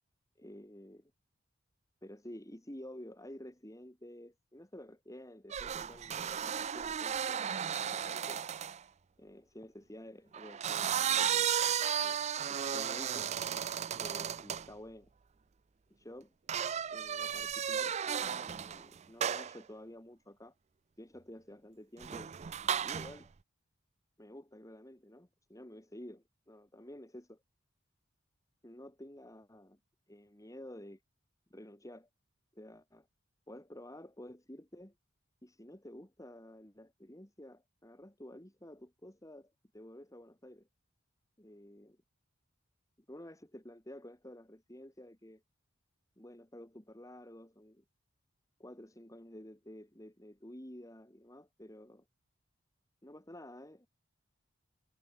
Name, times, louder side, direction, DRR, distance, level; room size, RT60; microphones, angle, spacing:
voice 1, 0.4-1.1 2.0-8.4 9.2-11.5 12.0-12.2 12.5-13.3 13.9-15.1 15.9-16.3 16.9-20.5 21.0-22.3 22.6-23.3 24.2-27.4 28.6-29.8 30.1-31.0 31.5-32.1 32.5-33.1 33.5-34.9 35.4-40.7 41.4-42.0 43.1-45.4 46.2-47.8 48.6-52.0 53.0-53.9, left 1 dB, 15° left, 2.9 m, -51 dB
sound 1, 5.5-8.8 10.3-14.7 16.5-18.8 19.2-19.6 22.0-23.2, right 8 dB, 35° right, 0.4 m, -34 dB
head